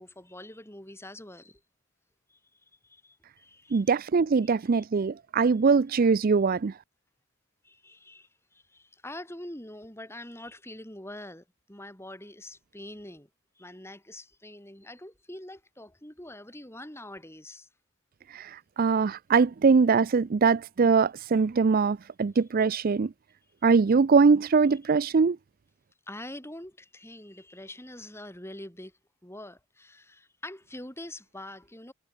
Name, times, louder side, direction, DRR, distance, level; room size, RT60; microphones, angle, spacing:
voice 1, 0.0-1.6 2.3-2.4 2.8-3.8 4.4-4.8 7.6-13.3 13.6-17.7 24.7-24.8 26.1-28.9 29.2-31.9, left 1 dB, 10° left, 7.1 m, -44 dB
voice 2, 3.7-6.7 18.3-23.1 23.6-25.4, right 5 dB, 40° right, 0.4 m, -22 dB
head